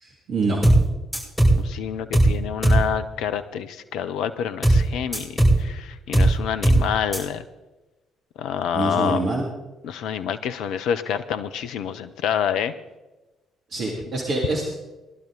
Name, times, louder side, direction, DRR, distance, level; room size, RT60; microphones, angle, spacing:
voice 1, 0.0-0.6 8.7-9.4 13.7-14.8, right 2 dB, 55° right, -2 dB, 2.5 m, -25 dB
sound 1, 0.6-0.9 1.1-1.6 2.1-2.4 2.6-2.9 4.6-4.9 5.1-5.6 6.1-6.4 6.6-6.9 7.1-7.2, right 1 dB, ahead, 6.3 m, -17 dB
voice 2, 1.5-7.4 8.4-9.2 9.8-12.7, left 8 dB, 65° left, 11 dB, 0.6 m, -27 dB
20.0 x 12.0 x 3.9 m, 1.1 s
figure-of-eight pair, 45°, 0 cm